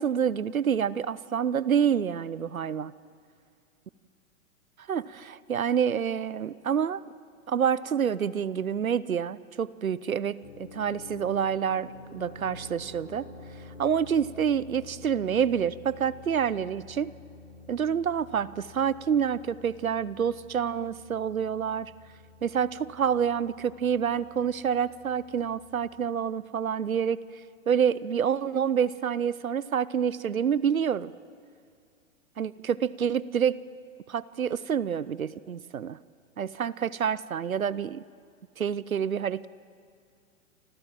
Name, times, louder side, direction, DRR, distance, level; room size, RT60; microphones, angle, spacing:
voice 1, 0.0-2.9 4.9-7.0 7.5-13.3 13.8-17.1 17.7-21.9 22.4-27.2 27.7-31.1 32.4-33.6 34.1-36.0 36.4-38.0 38.6-39.5, right 8 dB, 85° right, 19 dB, 0.8 m, -27 dB
sound 1, 10.4-26.1, left 3 dB, 55° left, 6.2 m, -49 dB
29.0 x 26.0 x 7.5 m, 2.3 s
figure-of-eight pair, 105°, 40 cm